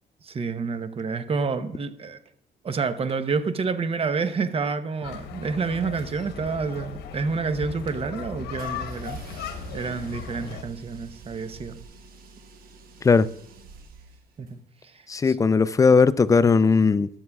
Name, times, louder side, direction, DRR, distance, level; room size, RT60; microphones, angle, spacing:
voice 1, 0.2-2.2 2.6-9.2 9.7-11.8 14.4-14.6 14.9-15.3, right 4 dB, 35° right, 0.8 m, -28 dB
sound 1, 5.0-10.6, left 7 dB, 85° left, 1.0 m, -37 dB
Bass drum, 6.2-11.8, right 5 dB, 80° right, 1.6 m, -48 dB
sound 2, 8.6-14.6, right 4 dB, 65° right, 1.3 m, -47 dB
voice 2, 15.1-17.1, left 4 dB, 20° left, 0.4 m, -18 dB
22.0 x 7.4 x 2.3 m
cardioid pair, 90°, 17 cm